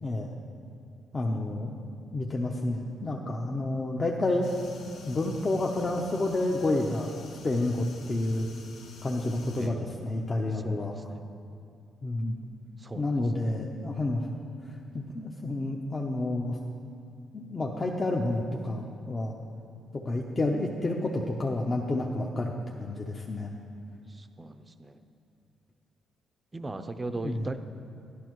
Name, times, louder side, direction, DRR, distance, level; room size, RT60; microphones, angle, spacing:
voice 1, 1.1-1.8 2.1-4.5 5.0-7.1 7.4-8.5 9.0-11.0 12.0-12.4 13.0-14.3 14.9-16.6 17.3-19.4 20.1-23.5 27.2-27.5, left 2 dB, 30° left, -1 dB, 0.7 m, -29 dB
sound 1, 4.4-9.7, left 3 dB, 80° left, 0.9 m, -49 dB
voice 2, 9.6-9.9 10.6-11.2 12.8-13.2 24.1-25.0 26.5-27.6, right 2 dB, 20° right, 9 dB, 0.5 m, -38 dB
11.5 x 11.0 x 3.1 m, 2.5 s
cardioid pair, 90°, 0 cm